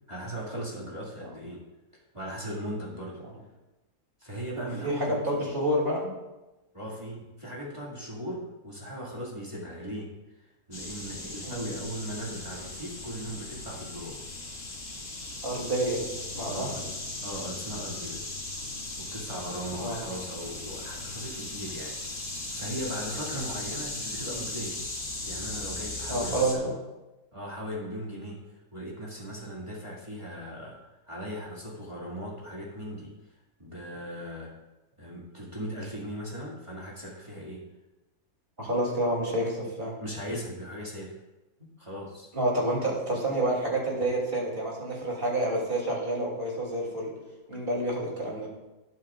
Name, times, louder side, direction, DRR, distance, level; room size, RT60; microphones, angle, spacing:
voice 1, 0.1-1.6 1.9-3.2 4.2-5.5 6.7-14.2 16.5-16.9 17.2-18.3 19.0-24.8 25.2-26.7 27.3-34.5 35.0-37.7 40.0-41.2 41.8-42.3 47.5-47.6, equal, 20° right, -6 dB, 2.1 m, -38 dB
voice 2, 4.8-6.1 11.4-11.6 15.4-16.7 19.8-20.0 23.3-23.5 26.1-26.7 38.6-40.0 42.3-47.1 47.5-48.5, right 1 dB, 35° right, -3 dB, 3.0 m, -29 dB
sound 1, 10.7-26.6, left 2 dB, 55° left, 2.1 m, -38 dB
17.5 x 7.9 x 2.4 m, 1.0 s
omnidirectional pair, 1.7 m